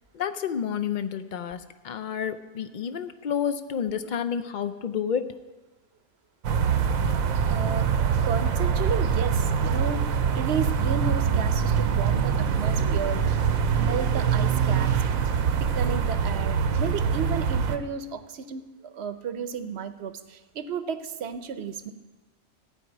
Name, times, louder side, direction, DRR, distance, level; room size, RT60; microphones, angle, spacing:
voice 1, 0.1-5.4, left 8 dB, 65° left, 11 dB, 0.4 m, -30 dB
sound 1, 6.4-17.8, right 7 dB, 85° right, 1.2 m, -24 dB
voice 2, 7.5-7.9 8.2-10.0 10.3-13.4 13.8-14.9 15.6-21.9, right 6 dB, 60° right, 10 dB, 0.9 m, -33 dB
14.5 x 5.0 x 9.0 m, 1.2 s
omnidirectional pair, 1.4 m